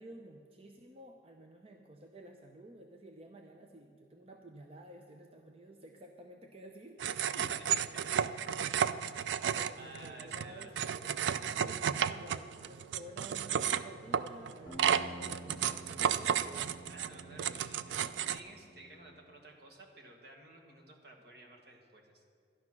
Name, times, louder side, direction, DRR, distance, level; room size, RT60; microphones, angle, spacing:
voice 1, 0.0-7.1 9.5-16.6, right 1 dB, 35° right, 3 dB, 0.6 m, -52 dB
sound 1, 7.0-18.4, right 8 dB, 85° right, 0.3 m, -33 dB
voice 2, 7.3-8.9 9.1-9.3 9.8-10.8 16.9-22.3, right 2 dB, 65° right, 1 dB, 1.6 m, -53 dB
sound 2, 14.7-19.3, right 1 dB, 20° left, 1.7 m, -51 dB
11.5 x 9.7 x 6.0 m, 2.2 s
head